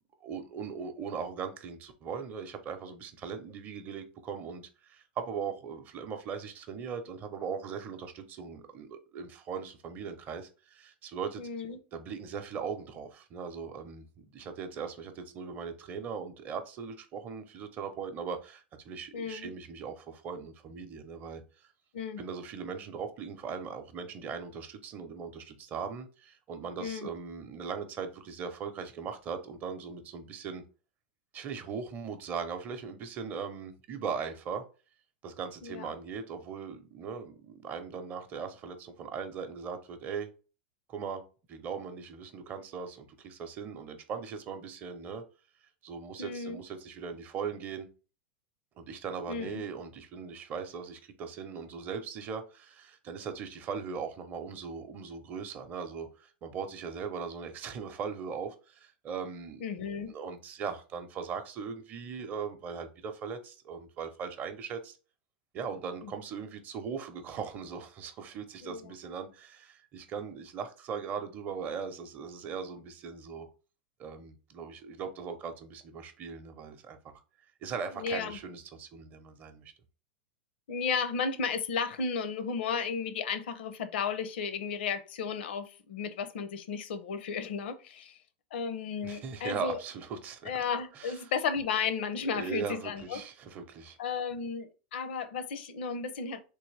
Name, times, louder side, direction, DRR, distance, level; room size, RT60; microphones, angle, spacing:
voice 1, 0.2-11.4 11.9-21.4 22.2-30.6 31.3-34.6 35.2-40.3 40.9-41.2 41.5-45.2 45.8-47.9 48.8-59.7 60.1-65.0 65.5-73.5 74.0-77.0 77.6-79.7 89.0-90.5 91.0-91.2 92.3-94.0, right 6 dB, 30° right, 0.6 m, -39 dB
voice 2, 11.4-11.8 19.1-19.5 21.9-22.2 26.8-27.1 35.6-35.9 46.2-46.6 49.3-49.6 59.6-60.1 66.0-66.1 68.6-68.9 77.9-78.4 80.7-88.2 88.5-89.8 90.4-93.2 94.0-96.4, left 6 dB, 80° left, 0.6 m, -34 dB
3.4 x 2.9 x 3.2 m
supercardioid pair, 140°, 6 cm